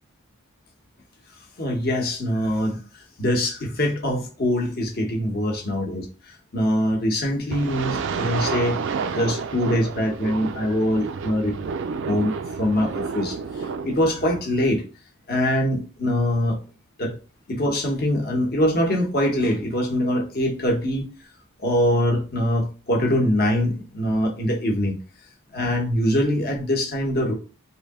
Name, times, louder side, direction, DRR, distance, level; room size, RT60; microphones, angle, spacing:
voice 1, 1.6-2.8 3.2-6.1 6.5-8.8 9.1-11.5 12.1-12.3 12.6-13.3 13.8-14.8 15.3-16.6 17.0-17.1 17.5-21.1 21.6-25.0 25.5-27.3, left 1 dB, 45° left, 0.9 m, -23 dB
sound 1, 7.5-14.4, right 5 dB, 55° right, 0.3 m, -30 dB
3.3 x 2.7 x 3.5 m
head